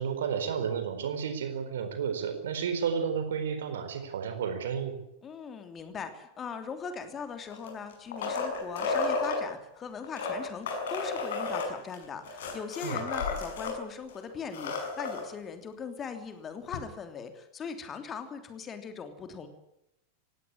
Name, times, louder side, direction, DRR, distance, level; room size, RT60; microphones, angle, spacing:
voice 1, 0.0-4.9 12.8-13.0, right 7 dB, 60° right, 8 dB, 4.3 m, -32 dB
voice 2, 5.2-19.5, left 6 dB, 25° left, 7 dB, 3.1 m, -40 dB
sound 1, 7.5-9.4 10.0-13.8 14.1-14.2 14.4-15.2 16.7-16.8, left 4 dB, 60° left, 6.1 m, -32 dB
18.5 x 17.0 x 9.8 m, 0.83 s
figure-of-eight pair, 90°, 0 cm